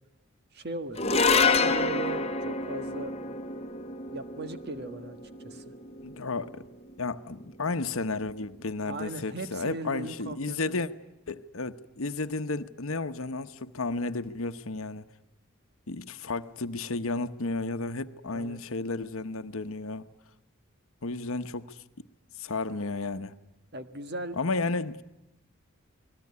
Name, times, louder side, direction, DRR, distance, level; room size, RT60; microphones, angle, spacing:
voice 1, 0.5-3.1 4.1-5.2 5.4-5.7 8.8-10.9 18.3-18.6 23.7-24.4, right 2 dB, 45° right, 1.5 m, -38 dB
sound 1, 1.0-7.4, left 4 dB, 25° left, 1.4 m, -28 dB
voice 2, 6.0-6.5 7.0-10.9 11.3-15.0 15.9-20.1 21.0-21.8 22.4-23.4 24.4-25.0, left 3 dB, 70° left, 1.0 m, -32 dB
29.0 x 20.0 x 9.7 m
head